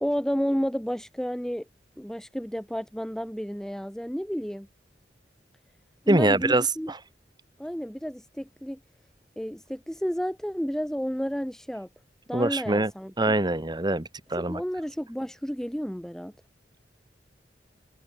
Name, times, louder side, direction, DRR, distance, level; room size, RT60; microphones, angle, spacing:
voice 1, 0.0-1.6 2.0-4.7 6.0-6.9 7.6-8.8 9.4-11.9 12.3-13.3 14.3-16.3, equal, 5° left, 1.2 m, -31 dB
voice 2, 6.1-7.0 12.3-12.9 13.2-14.6, right 2 dB, 25° right, 1.7 m, -24 dB
head